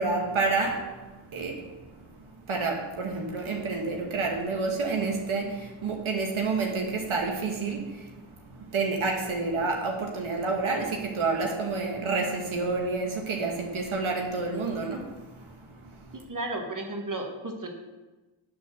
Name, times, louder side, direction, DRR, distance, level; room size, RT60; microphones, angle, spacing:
voice 1, 0.0-2.1 2.5-16.2, right 3 dB, 75° right, 1 dB, 1.2 m, -29 dB
voice 2, 16.3-17.7, right 2 dB, 40° right, 3 dB, 1.4 m, -33 dB
8.4 x 4.3 x 6.1 m, 1.2 s
cardioid pair, 45°, 49 cm